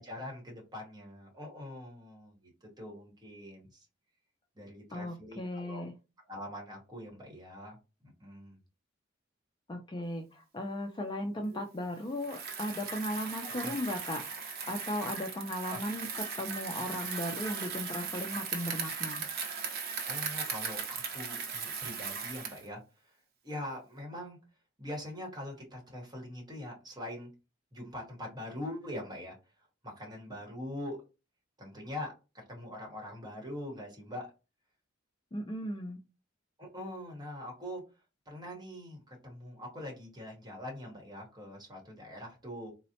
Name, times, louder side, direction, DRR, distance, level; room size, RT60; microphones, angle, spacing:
voice 1, 0.0-2.5 2.8-3.9 4.5-5.8 6.3-7.8 8.0-8.6 11.5-11.6 13.4-13.8 15.7-15.8 20.0-22.8 23.4-24.4 24.8-27.3 27.7-29.4 29.8-31.0 31.6-34.3 36.6-37.8 38.3-42.7, left 1 dB, 20° right, -1 dB, 1.1 m, -43 dB
voice 2, 4.9-5.9 9.7-14.2 14.7-19.2 35.3-36.0, left 1 dB, 25° left, 4 dB, 0.3 m, -36 dB
Bicycle, 12.2-22.7, right 6 dB, 50° right, 0.7 m, -38 dB
3.9 x 2.0 x 2.7 m, 0.30 s
head